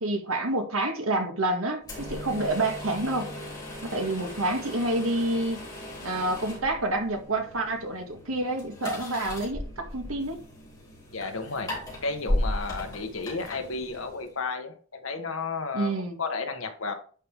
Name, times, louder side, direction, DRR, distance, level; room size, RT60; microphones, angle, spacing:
voice 1, 0.0-3.3 3.8-5.7 6.0-10.4 15.7-16.2, right 2 dB, 80° right, 1.8 m, -28 dB
sound 1, 1.8-14.4, left 1 dB, 20° left, 3.7 m, -36 dB
voice 2, 11.1-15.9 16.2-16.9, left 4 dB, 70° left, 1.5 m, -33 dB
10.5 x 4.7 x 3.7 m
head